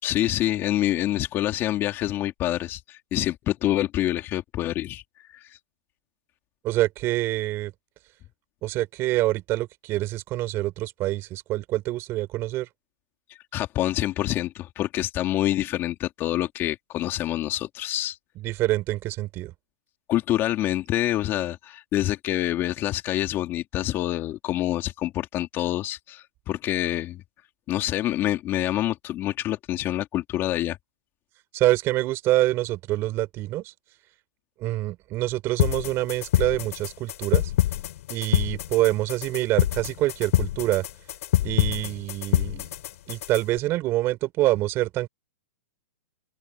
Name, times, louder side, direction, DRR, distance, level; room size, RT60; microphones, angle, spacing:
voice 1, 0.0-5.0 5.3-5.5 13.5-18.2 20.1-27.2 27.7-30.8, left 14 dB, 25° left, 3.1 m, -26 dB
voice 2, 6.6-7.7 8.6-12.7 18.3-19.5 31.5-33.7 34.6-37.5 38.1-40.8 41.4-42.7 43.1-45.1, right 16 dB, 25° right, 4.7 m, -26 dB
sound 1, 35.6-43.6, left 13 dB, 55° left, 6.4 m, -26 dB
open air
hypercardioid pair, 155°, 9 cm